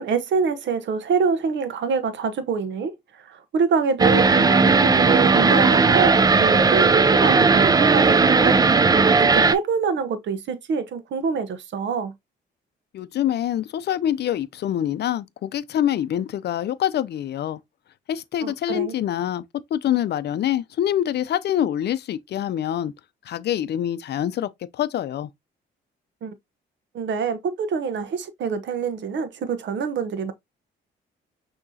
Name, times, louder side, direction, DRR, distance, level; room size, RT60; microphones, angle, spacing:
voice 1, 0.0-2.9 3.3-8.6 9.3-12.1 18.4-18.9 26.2-26.3 26.9-30.3, right 5 dB, 65° right, 0.9 m, -25 dB
sound 1, 4.0-9.5, right 4 dB, 20° right, 0.4 m, -16 dB
voice 2, 12.9-17.6 18.1-19.4 19.7-22.9 23.3-25.3, left 11 dB, 60° left, 0.5 m, -25 dB
6.0 x 2.9 x 2.7 m
cardioid pair, 90°, 20 cm